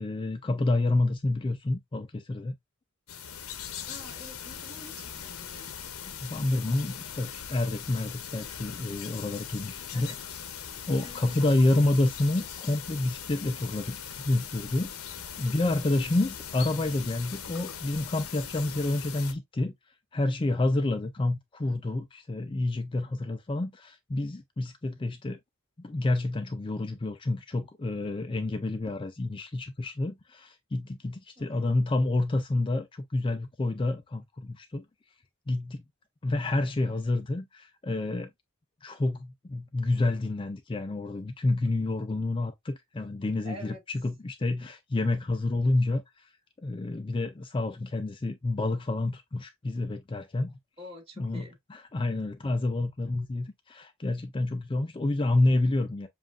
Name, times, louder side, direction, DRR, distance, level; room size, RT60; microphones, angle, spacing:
voice 1, 0.0-2.5 6.0-10.1 10.9-14.0 14.2-19.7 20.1-25.4 25.8-34.8 35.5-35.8 36.2-38.3 38.8-46.3 46.6-50.5 51.2-56.1, left 2 dB, 25° left, 0.4 m, -29 dB
sound 1, 3.1-19.3, left 8 dB, 85° left, 0.8 m, -40 dB
voice 2, 3.9-5.8 9.9-10.2 11.0-11.5 15.4-15.8 31.4-31.7 43.4-43.8 50.8-51.6, left 1 dB, 25° right, 1.9 m, -47 dB
7.3 x 2.5 x 2.4 m
head